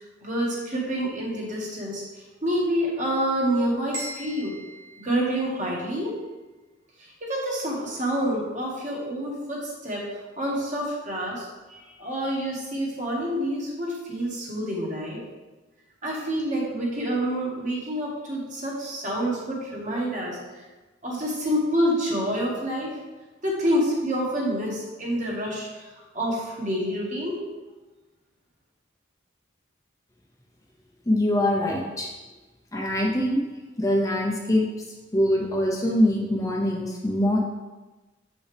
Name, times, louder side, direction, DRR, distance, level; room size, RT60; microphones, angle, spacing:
voice 1, 0.2-2.0 2.4-4.5 5.0-6.1 7.2-10.0 10.4-15.2 16.0-20.4 21.0-23.0 23.4-27.4, equal, 40° right, -3 dB, 1.7 m, -27 dB
sound 1, 3.9-5.9, right 1 dB, 75° right, 1.7 m, -40 dB
voice 2, 31.1-32.1 32.7-33.4 33.8-34.7 35.1-37.4, left 1 dB, 15° left, -1 dB, 0.7 m, -23 dB
7.2 x 5.3 x 3.4 m, 1.2 s
head